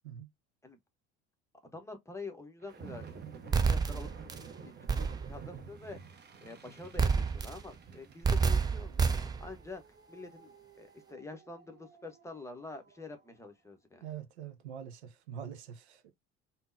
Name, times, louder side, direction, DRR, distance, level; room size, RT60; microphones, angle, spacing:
voice 1, 1.7-3.0 3.3-4.1 4.6-9.8 10.1-14.1, left 3 dB, 10° left, 0.7 m, -47 dB
sound 1, 2.6-13.2, right 6 dB, 30° right, 0.7 m, -51 dB
sound 2, 3.5-4.4 4.9-5.4 7.0-7.7 8.2-9.5, right 5 dB, 15° right, 0.3 m, -29 dB
voice 2, 14.0-16.1, right 9 dB, 70° right, 0.6 m, -44 dB
3.6 x 2.0 x 2.4 m
figure-of-eight pair, 60°, 34 cm